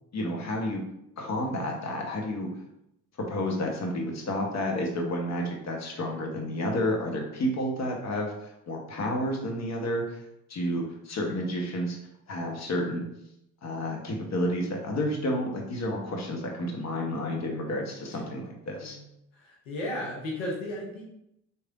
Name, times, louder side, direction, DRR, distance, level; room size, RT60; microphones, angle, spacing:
voice 1, 0.1-0.8 1.2-2.5 3.3-10.2 10.5-12.0 12.3-13.0 13.6-19.0, left 1 dB, 45° left, 1 dB, 1.1 m, -30 dB
voice 2, 19.4-21.0, left 1 dB, 90° left, -3 dB, 0.8 m, -34 dB
4.3 x 3.2 x 2.5 m, 0.81 s
hypercardioid pair, 45°, 37 cm